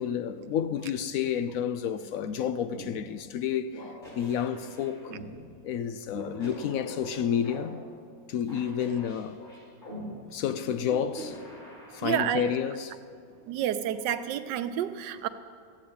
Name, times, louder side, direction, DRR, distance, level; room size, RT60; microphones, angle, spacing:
voice 1, 0.0-5.1 5.6-7.8 8.3-9.4 10.3-11.4 11.9-13.0, left 8 dB, 70° left, 0.8 m, -30 dB
sound 1, 2.7-2.9 3.7-5.3 6.1-7.6 8.5-10.0 10.9-12.2, equal, 25° left, 4.6 m, -43 dB
voice 2, 12.0-12.5 13.5-15.3, right 10 dB, 85° right, 1.3 m, -29 dB
14.5 x 8.4 x 8.6 m
omnidirectional pair, 1.8 m